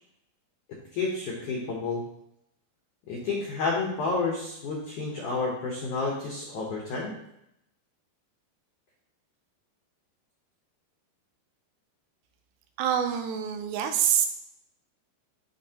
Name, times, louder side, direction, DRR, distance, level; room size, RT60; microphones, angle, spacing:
voice 1, 0.9-2.0 3.1-7.1, left 3 dB, 85° left, -2 dB, 1.7 m, -30 dB
voice 2, 12.8-14.3, right 9 dB, 80° right, 5 dB, 2.9 m, -25 dB
11.0 x 4.1 x 2.9 m, 0.80 s
omnidirectional pair, 5.1 m